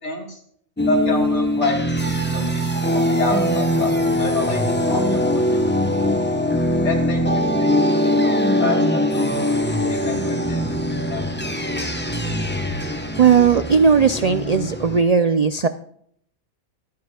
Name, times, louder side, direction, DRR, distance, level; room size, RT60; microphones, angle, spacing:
voice 1, 0.0-0.4 0.9-4.6 4.9-5.4 5.8-5.9 6.8-10.8 11.1-11.2, left 3 dB, 55° left, 2 dB, 3.2 m, -28 dB
sound 1, 0.8-15.0, left 1 dB, 10° left, 0.9 m, -21 dB
voice 2, 13.2-15.7, right 6 dB, 75° right, 10 dB, 0.3 m, -16 dB
24.5 x 9.5 x 2.3 m, 0.65 s
omnidirectional pair, 1.4 m